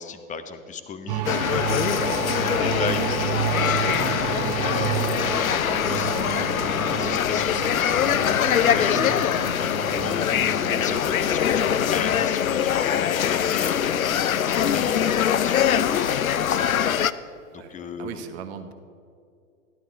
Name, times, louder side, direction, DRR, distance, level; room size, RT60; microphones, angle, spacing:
voice 1, 0.0-17.2 17.5-18.2, left 5 dB, 20° left, 9 dB, 1.0 m, -36 dB
sound 1, 1.1-13.6, right 15 dB, 35° right, 0.4 m, -32 dB
sound 2, 1.2-17.1, left 9 dB, 80° left, 0.6 m, -23 dB
sound 3, 2.9-11.0, right 8 dB, 20° right, 0.9 m, -37 dB
voice 2, 17.6-18.7, right 7 dB, 50° right, 7 dB, 1.5 m, -38 dB
14.5 x 12.0 x 4.7 m, 2.4 s
figure-of-eight pair, 100°, 41 cm